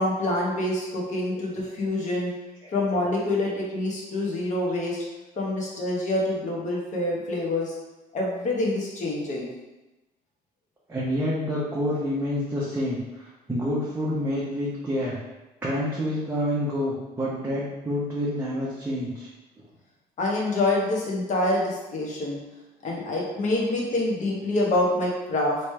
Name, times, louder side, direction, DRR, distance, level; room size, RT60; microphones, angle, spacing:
voice 1, 0.0-2.3 2.7-5.0 5.4-7.8 8.1-9.5 20.2-22.4 22.8-25.6, left 2 dB, 45° left, -3 dB, 1.1 m, -26 dB
voice 2, 10.9-15.2 15.6-19.3, equal, 15° right, -8 dB, 0.8 m, -28 dB
3.2 x 3.0 x 3.3 m, 1.0 s
cardioid pair, 110°, 17 cm